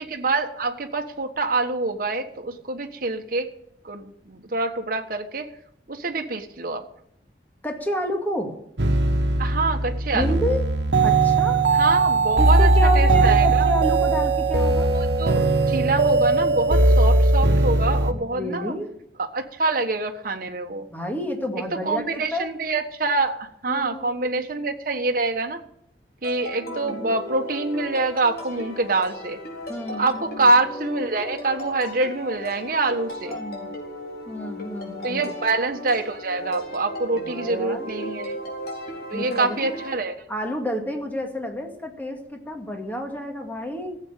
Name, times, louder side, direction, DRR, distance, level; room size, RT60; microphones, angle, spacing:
voice 1, 0.0-3.5 3.8-5.5 5.9-6.8 9.4-10.6 11.7-13.7 14.9-18.7 19.2-20.9 21.8-25.6 26.2-29.4 29.9-33.4 35.0-38.4 39.1-40.1, right 3 dB, 55° right, 4 dB, 1.4 m, -25 dB
voice 2, 7.6-8.5 10.1-10.7 11.0-11.6 12.4-14.9 18.3-18.9 20.9-22.5 23.7-24.3 26.7-27.1 29.7-30.5 33.3-33.7 34.3-35.3 37.2-37.9 39.1-39.8 40.3-44.0, equal, 10° left, 3 dB, 2.2 m, -30 dB
sound 1, 8.8-18.1, right 2 dB, 80° right, 1.3 m, -19 dB
sound 2, 26.2-40.0, left 1 dB, 60° left, 4.3 m, -36 dB
15.5 x 8.0 x 8.9 m, 0.73 s
head